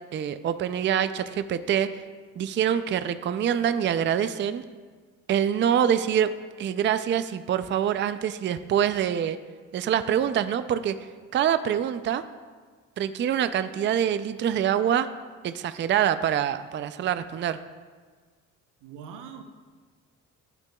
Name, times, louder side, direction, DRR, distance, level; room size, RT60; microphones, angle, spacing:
voice 1, 0.1-2.0 2.4-4.6 5.3-6.3 6.6-9.4 9.7-11.0 11.3-12.2 13.0-15.1 15.4-17.6, right 9 dB, 40° right, 0.4 m, -25 dB
voice 2, 18.8-19.4, right 7 dB, 90° right, 0.8 m, -42 dB
15.0 x 5.9 x 2.3 m
cardioid pair, 90°, 30 cm